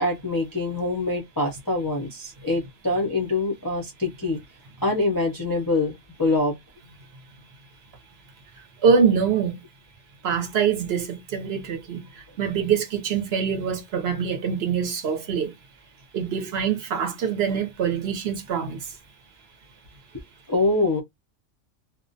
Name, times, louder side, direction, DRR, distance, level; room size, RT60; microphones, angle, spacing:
voice 1, 0.0-4.4 4.8-6.6 20.5-21.0, left 2 dB, 30° left, 0.4 m, -24 dB
voice 2, 8.8-9.6 10.2-15.5 16.1-18.8, right 6 dB, 55° right, 0.8 m, -24 dB
2.4 x 2.0 x 2.6 m
omnidirectional pair, 1.4 m